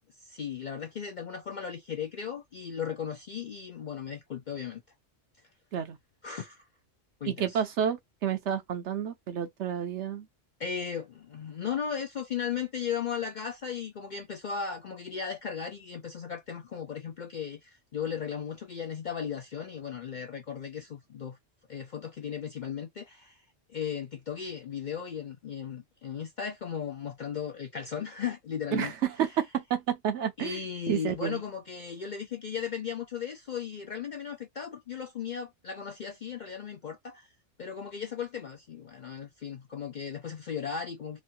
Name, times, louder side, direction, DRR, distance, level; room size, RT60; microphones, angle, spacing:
voice 1, 0.2-4.8 6.2-6.6 7.2-7.6 10.6-21.4 21.7-23.4 23.7-28.9 29.2-29.3 30.4-37.3 37.6-41.2, left 7 dB, 55° left, 0.5 m, -36 dB
voice 2, 7.3-10.3 28.7-30.6 30.9-31.4, right 9 dB, 70° right, 1.0 m, -30 dB
3.0 x 2.2 x 2.6 m
omnidirectional pair, 1.3 m